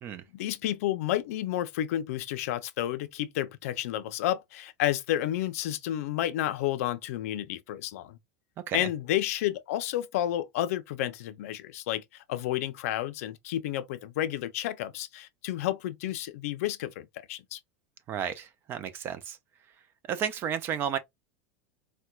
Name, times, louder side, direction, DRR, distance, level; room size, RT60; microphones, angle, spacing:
voice 1, 0.3-8.2 8.7-17.6, left 13 dB, 70° left, 0.5 m, -31 dB
voice 2, 18.1-19.4 20.1-21.0, right 8 dB, 25° right, 0.4 m, -32 dB
4.3 x 2.2 x 2.3 m
supercardioid pair, 165°, 8 cm